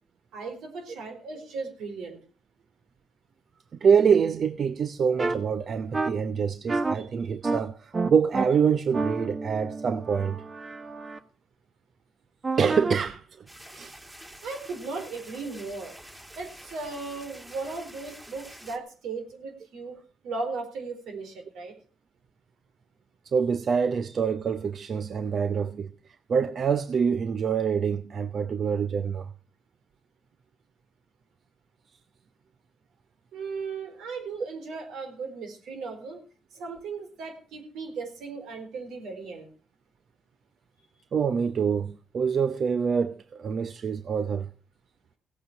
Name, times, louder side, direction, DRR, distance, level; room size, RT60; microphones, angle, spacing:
voice 1, 0.3-2.2 7.0-7.1 14.4-16.0 16.4-20.0 20.2-21.7 33.3-36.2 36.6-39.5, right 4 dB, 80° right, 4.3 m, -36 dB
voice 2, 3.8-10.4 12.6-13.5 13.7-13.9 23.2-29.3 41.1-44.5, right 6 dB, 50° right, 0.7 m, -26 dB
sound 1, 5.2-5.3 5.9-6.1 6.7-6.9 7.4-7.6 7.9-8.4 8.9-11.2 12.4-12.9, right 3 dB, 30° right, 1.2 m, -29 dB
sound 2, 13.5-18.8, right 1 dB, 15° right, 2.7 m, -47 dB
17.0 x 8.5 x 6.2 m
cardioid pair, 90°, 0 cm